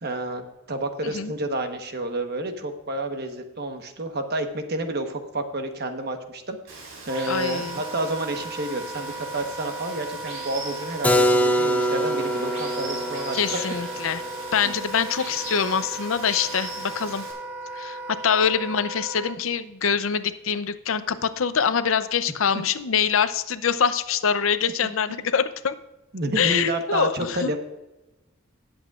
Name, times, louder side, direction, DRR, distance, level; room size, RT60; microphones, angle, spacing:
voice 1, 0.0-13.6 14.6-14.7 24.8-25.2 26.1-27.6, right 1 dB, 50° right, 6 dB, 1.2 m, -30 dB
Water, 6.7-17.3, right 3 dB, 85° right, 4.0 m, -40 dB
Wind instrument woodwind instrument, 7.1-19.4, right 2 dB, 10° right, 1.0 m, -36 dB
voice 2, 7.3-7.8 13.3-14.2 14.5-17.2 17.7-25.7 26.4-27.6, left 7 dB, 75° left, 12 dB, 0.6 m, -24 dB
Keyboard (musical), 11.0-16.7, equal, 10° left, 0.6 m, -26 dB
19.0 x 7.9 x 2.5 m, 1.0 s
head